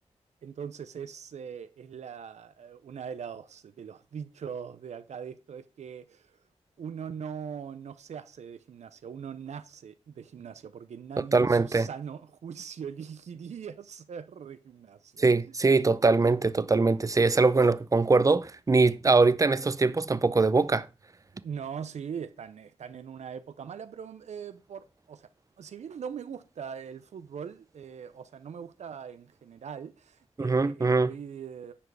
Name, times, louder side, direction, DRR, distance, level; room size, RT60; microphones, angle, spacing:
voice 1, 0.4-6.3 6.8-15.3 16.5-16.7 21.4-25.3 25.6-31.7, right 7 dB, 80° right, 0.6 m, -41 dB
voice 2, 11.3-11.9 15.2-20.9 30.4-31.1, right 3 dB, 30° right, 0.6 m, -22 dB
10.0 x 4.9 x 4.7 m
cardioid pair, 70°, 12 cm